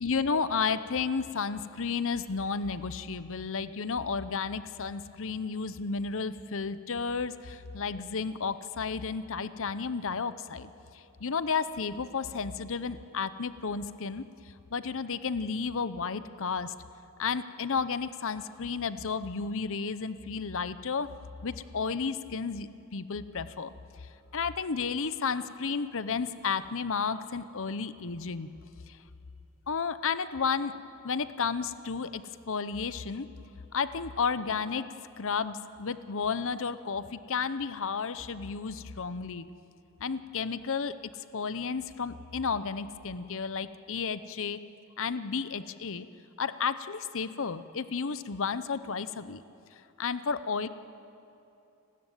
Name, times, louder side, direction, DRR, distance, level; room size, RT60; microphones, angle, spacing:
voice 1, 0.0-14.2 14.7-16.7 17.2-21.1 21.4-23.7 24.3-28.5 28.9-29.0 29.7-30.7 31.0-33.3 33.7-34.8 35.2-39.4 40.0-41.0 41.3-44.6 45.0-46.1 46.4-49.4 50.0-50.7, left 5 dB, 65° left, 13 dB, 0.8 m, -32 dB
30.0 x 13.0 x 9.1 m, 2.7 s
head